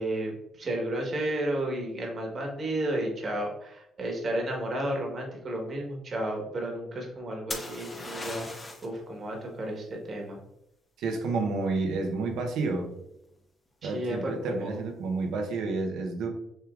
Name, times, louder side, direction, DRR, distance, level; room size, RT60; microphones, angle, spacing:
voice 1, 0.0-8.5 8.8-10.4 13.8-14.8, right 1 dB, 45° right, 1 dB, 1.4 m, -32 dB
sound 1, 7.5-9.0 12.6-13.1, left 2 dB, 25° left, 1.0 m, -38 dB
voice 2, 11.0-12.9 13.8-16.3, right 3 dB, 85° right, 3 dB, 0.9 m, -30 dB
6.4 x 3.3 x 2.5 m, 0.83 s
cardioid pair, 90°, 0 cm